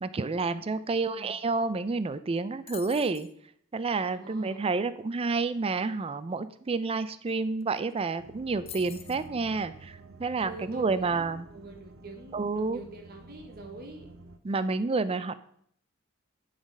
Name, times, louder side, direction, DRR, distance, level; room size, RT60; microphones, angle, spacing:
voice 1, 0.0-3.3 3.7-11.5 12.3-12.8 14.4-15.3, right 3 dB, 30° right, 13 dB, 0.4 m, -29 dB
voice 2, 0.8-1.3 4.1-4.7 10.4-14.1, right 2 dB, 50° right, 2 dB, 1.4 m, -45 dB
sound 1, 2.7-3.3 7.3-7.4 7.6-7.9 8.7-9.3, left 10 dB, 30° left, 0.5 m, -45 dB
sound 2, 8.2-14.4, right 2 dB, 70° right, 0.7 m, -50 dB
10.5 x 4.0 x 5.3 m, 0.66 s
head